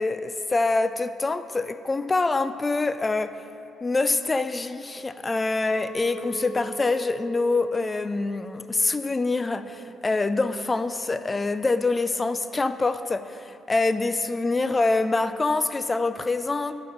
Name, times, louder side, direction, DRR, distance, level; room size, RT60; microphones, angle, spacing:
voice 1, 0.0-3.4 3.8-16.7, left 3 dB, 25° left, 11 dB, 0.4 m, -25 dB
Chink clink, 5.7-10.0 10.5-10.9, right 2 dB, 80° left, 1.0 m, -42 dB
11.0 x 4.1 x 6.3 m, 2.7 s
cardioid pair, 90°, 0 cm